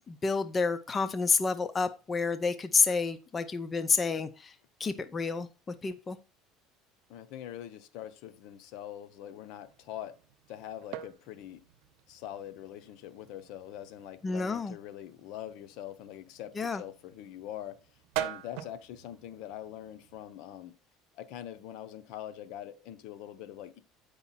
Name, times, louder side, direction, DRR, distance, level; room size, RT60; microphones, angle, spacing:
voice 1, 0.1-4.5 4.8-6.2 14.2-14.8 16.6-16.8, left 4 dB, 25° left, 0.6 m, -29 dB
voice 2, 7.1-10.2 10.5-11.6 12.1-17.8 18.1-20.8 21.1-23.8, left 11 dB, 70° left, 0.8 m, -43 dB
sound 1, 9.6-20.2, right 13 dB, 75° right, 0.8 m, -45 dB
8.1 x 5.3 x 4.2 m
cardioid pair, 125°, 0 cm